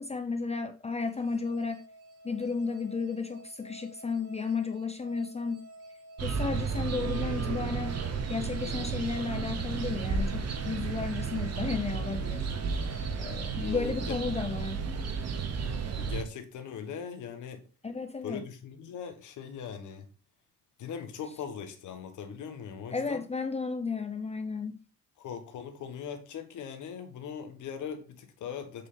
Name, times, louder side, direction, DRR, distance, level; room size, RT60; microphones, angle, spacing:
voice 1, 0.0-1.8 2.2-5.6 6.2-8.0 8.3-12.5 13.2-14.9 17.8-18.4 22.9-24.8, left 4 dB, 20° left, 0.6 m, -33 dB
sound 1, 1.1-15.5, right 1 dB, 85° right, 1.5 m, -51 dB
sound 2, 6.2-16.2, right 5 dB, 60° right, 1.2 m, -33 dB
voice 2, 13.6-14.2 15.9-17.7 18.2-20.1 20.8-23.3 25.2-28.9, left 7 dB, 75° left, 1.3 m, -40 dB
7.3 x 4.2 x 3.7 m
cardioid pair, 90°, 30 cm